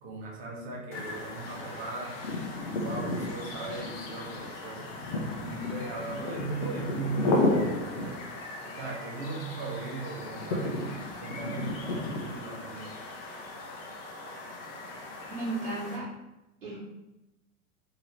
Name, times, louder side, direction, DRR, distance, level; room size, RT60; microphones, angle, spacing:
voice 1, 0.0-2.2 2.6-4.9 5.4-8.2 8.7-13.0, right 3 dB, 45° right, -3 dB, 1.0 m, -38 dB
sound 1, 0.9-16.0, left 2 dB, 40° left, 0.7 m, -34 dB
voice 2, 15.3-16.1 16.6-16.8, right 2 dB, 70° right, -11 dB, 1.4 m, -34 dB
2.9 x 2.8 x 3.2 m, 0.97 s
figure-of-eight pair, 90°, 45 cm